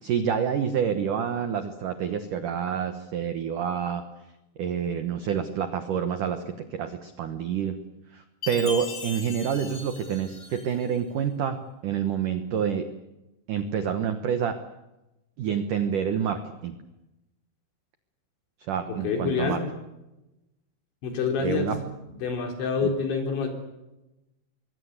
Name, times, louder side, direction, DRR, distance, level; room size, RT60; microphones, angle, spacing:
voice 1, 0.0-4.0 4.6-7.8 8.1-12.9 13.5-14.6 15.4-16.7 18.7-19.6 21.4-21.8 22.8-22.9, right 8 dB, 90° right, 8 dB, 1.8 m, -28 dB
Chime, 8.4-10.9, left 3 dB, 25° left, 2.5 m, -38 dB
voice 2, 18.9-19.6 21.0-21.8 22.2-23.5, left 5 dB, 65° left, 3 dB, 6.1 m, -27 dB
24.5 x 22.5 x 8.2 m, 0.99 s
omnidirectional pair, 5.7 m